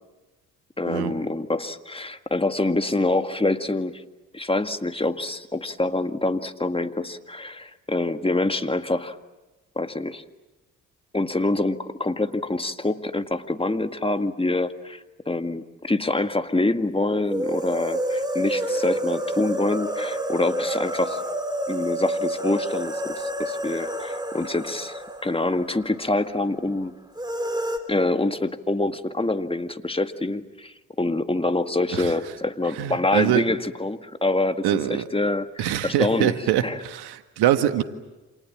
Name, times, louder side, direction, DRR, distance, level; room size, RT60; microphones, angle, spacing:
voice 1, 0.8-4.0 4.3-9.2 9.8-10.2 11.1-21.2 21.7-27.0 27.9-36.8, left 2 dB, 15° left, 1.9 m, -26 dB
sound 1, 17.3-26.1 26.4-26.5 27.2-27.8, right 1 dB, 10° right, 4.2 m, -29 dB
voice 2, 32.8-33.4 34.6-35.0 35.6-37.8, right 12 dB, 75° right, 1.7 m, -23 dB
29.0 x 27.5 x 7.5 m
hypercardioid pair, 45°, 39 cm